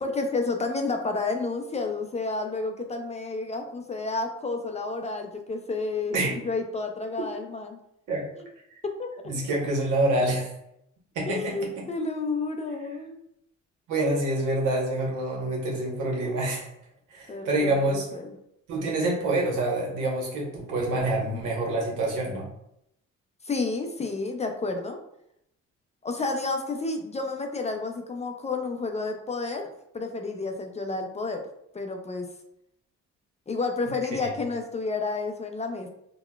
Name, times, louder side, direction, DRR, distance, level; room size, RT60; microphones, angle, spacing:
voice 1, 0.0-7.8 8.4-8.5 9.0-9.4 11.3-13.2 17.3-18.3 21.3-21.4 23.4-25.0 26.0-29.7 29.9-31.4 31.7-32.3 33.5-35.9, left 3 dB, 25° left, 4 dB, 0.4 m, -30 dB
voice 2, 9.2-10.5 11.1-11.5 13.9-16.7 17.1-18.1 18.7-22.5, right 2 dB, 85° right, -2 dB, 1.0 m, -26 dB
3.9 x 2.1 x 2.3 m, 0.77 s
cardioid pair, 90°, 30 cm